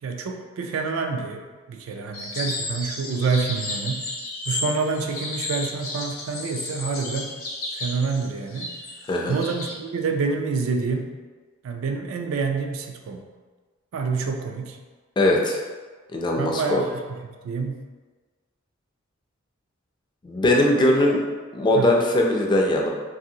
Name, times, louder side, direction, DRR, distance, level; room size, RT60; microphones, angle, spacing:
voice 1, 0.0-4.1 4.5-7.3 7.7-8.8 9.3-11.1 11.6-13.2 13.9-14.8 16.4-17.9 21.8-21.9, right 4 dB, 75° right, 4 dB, 0.3 m, -27 dB
sound 1, 2.1-9.8, left 2 dB, 90° left, 0.7 m, -33 dB
voice 2, 15.2-15.6 16.1-16.8 20.2-21.2 21.5-22.9, left 1 dB, 20° left, 0 dB, 0.3 m, -20 dB
2.7 x 2.6 x 2.7 m, 1.4 s
head